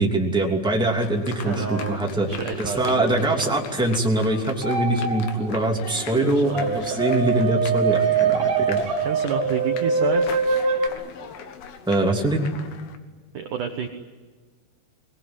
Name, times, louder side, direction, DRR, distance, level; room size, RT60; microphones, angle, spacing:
voice 1, 0.0-2.3 2.6-8.8 11.9-12.5, right 2 dB, ahead, -1 dB, 1.1 m, -23 dB
sound 1, 1.0-13.0, left 6 dB, 65° left, 3.0 m, -39 dB
voice 2, 1.4-3.5 6.2-7.0 9.0-10.4 13.3-13.9, right 7 dB, 75° right, 5 dB, 1.8 m, -30 dB
sound 2, 4.6-5.6 6.5-10.9, right 5 dB, 55° right, 2.1 m, -23 dB
23.5 x 19.5 x 9.7 m, 1.4 s
omnidirectional pair, 5.6 m